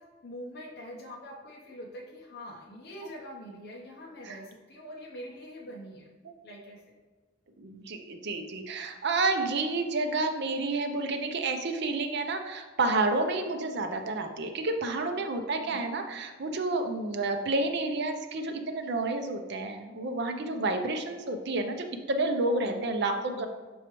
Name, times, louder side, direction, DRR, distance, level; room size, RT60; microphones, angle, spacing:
voice 1, 0.0-6.1 6.4-6.8 15.5-15.8 22.5-22.9 23.2-23.5, equal, 55° left, -2 dB, 0.8 m, -44 dB
voice 2, 7.6-23.5, right 2 dB, 60° right, 5 dB, 0.6 m, -30 dB
7.0 x 4.6 x 3.0 m, 1.4 s
head